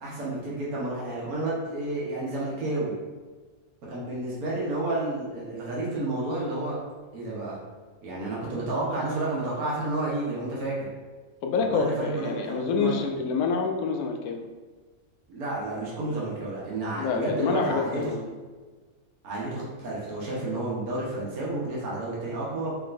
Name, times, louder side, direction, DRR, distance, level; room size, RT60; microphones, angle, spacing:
voice 1, 0.0-2.9 3.9-6.8 7.1-7.6 8.0-10.8 11.5-13.1 15.3-18.0 19.2-22.7, right 2 dB, 80° right, -6 dB, 1.5 m, -31 dB
voice 2, 11.4-14.4 17.0-18.3, left 5 dB, 85° left, 3 dB, 1.1 m, -27 dB
4.7 x 2.9 x 2.5 m, 1.3 s
omnidirectional pair, 1.6 m